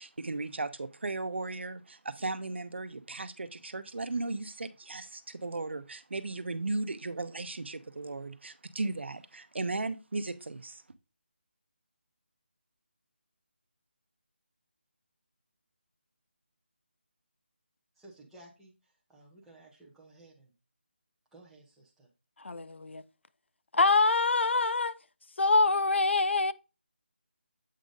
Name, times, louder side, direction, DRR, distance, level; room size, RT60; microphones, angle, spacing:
voice 1, 0.0-10.8, right 3 dB, 75° right, 0.7 m, -36 dB
voice 2, 18.0-20.5 21.3-22.1, right 2 dB, ahead, 0.5 m, -56 dB
voice 3, 22.4-23.0 23.7-24.9 25.4-26.5, left 3 dB, 85° left, 0.5 m, -25 dB
7.5 x 2.5 x 5.1 m
figure-of-eight pair, 175°, 6 cm